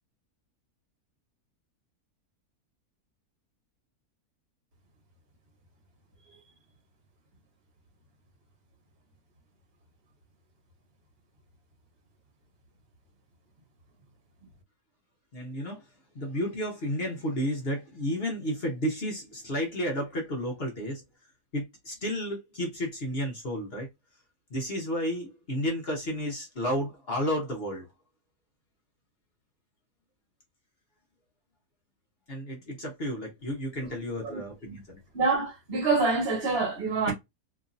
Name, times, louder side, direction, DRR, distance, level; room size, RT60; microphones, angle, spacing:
voice 1, 15.3-15.8 16.1-21.0 21.5-23.9 24.5-27.9 32.3-35.0, equal, 45° left, 1.0 m, -32 dB
voice 2, 35.1-37.1, right 3 dB, 45° right, 1.4 m, -26 dB
3.0 x 2.6 x 2.4 m
omnidirectional pair, 1.6 m